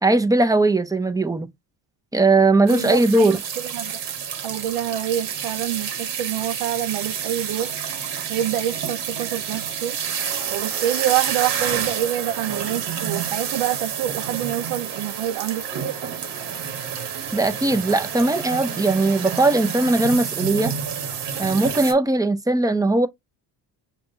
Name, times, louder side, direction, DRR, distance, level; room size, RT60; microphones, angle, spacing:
voice 1, 0.0-1.5 2.1-3.4 17.3-20.7 21.4-23.1, right 2 dB, 10° right, 0.5 m, -19 dB
sound 1, 2.7-21.9, right 8 dB, 55° right, 1.2 m, -29 dB
voice 2, 2.7-3.4 3.6-3.9 4.4-7.7 8.3-10.0 10.5-15.9, right 12 dB, 85° right, 0.6 m, -26 dB
5.1 x 2.3 x 2.6 m
supercardioid pair, 70°, 48 cm